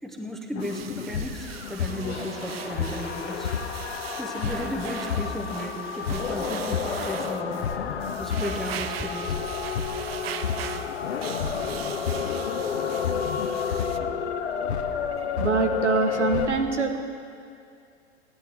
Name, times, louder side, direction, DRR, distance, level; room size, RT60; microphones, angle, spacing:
voice 1, 0.0-3.5 4.2-7.6 8.1-9.5, left 1 dB, ahead, 3 dB, 0.5 m, -34 dB
sound 1, 0.5-16.5, left 7 dB, 65° left, 0.8 m, -30 dB
sound 2, 0.6-14.0, right 10 dB, 60° right, 0.5 m, -40 dB
voice 2, 15.4-17.0, right 4 dB, 80° right, 6 dB, 1.0 m, -24 dB
15.5 x 10.0 x 3.4 m, 2.4 s
figure-of-eight pair, 95°, 35 cm